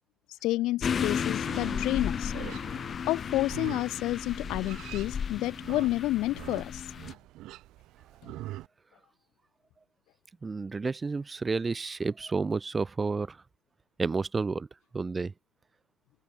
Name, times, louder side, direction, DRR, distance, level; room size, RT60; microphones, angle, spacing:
voice 1, 0.4-2.3 3.1-6.9, left 17 dB, 45° left, 1.7 m, -30 dB
sound 1, 0.8-7.1, left 7 dB, 20° left, 2.8 m, -34 dB
Livestock farm animals working animals, 1.3-8.7, right 16 dB, 40° right, 5.2 m, -45 dB
voice 2, 10.4-13.4 14.0-14.7 14.9-15.3, right 4 dB, 15° right, 4.6 m, -30 dB
supercardioid pair, 130°, 0 cm